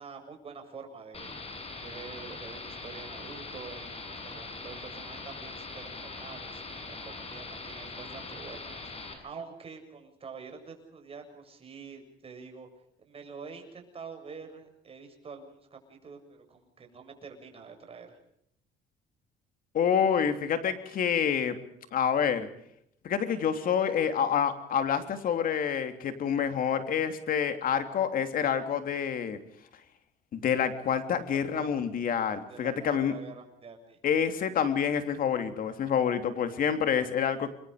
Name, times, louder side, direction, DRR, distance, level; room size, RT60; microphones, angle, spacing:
voice 1, 0.0-1.4 1.8-12.7 13.0-18.2 31.2-31.7 32.5-34.5, right 5 dB, 35° right, 4 dB, 7.4 m, -46 dB
sound 1, 1.1-9.1, left 3 dB, 35° left, 7.4 m, -42 dB
voice 2, 19.7-21.6 21.9-22.5 23.0-29.4 30.3-33.1 34.0-37.5, left 8 dB, 55° left, 8 dB, 3.2 m, -27 dB
29.0 x 23.0 x 5.1 m, 0.71 s
cardioid pair, 110°, 17 cm